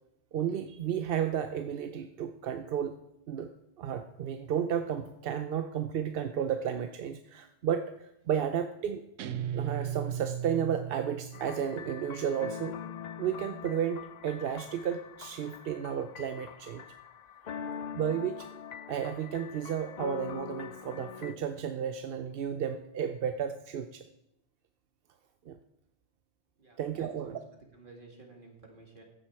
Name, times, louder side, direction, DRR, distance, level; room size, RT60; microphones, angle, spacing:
voice 1, 0.3-3.0 3.3-3.5 3.8-9.0 9.5-12.8 13.2-16.8 17.4-17.5 17.9-18.5 18.9-24.0 25.5-25.6 26.8-27.4, right 8 dB, 60° right, 8 dB, 0.7 m, -33 dB
Guitar, 9.2-11.8, right 9 dB, 90° right, 1.0 m, -36 dB
sound 1, 11.3-21.3, left 8 dB, 70° left, 0.4 m, -43 dB
voice 2, 26.6-29.0, right 3 dB, 45° right, 1 dB, 2.2 m, -53 dB
14.5 x 7.4 x 4.6 m, 0.84 s
omnidirectional pair, 1.3 m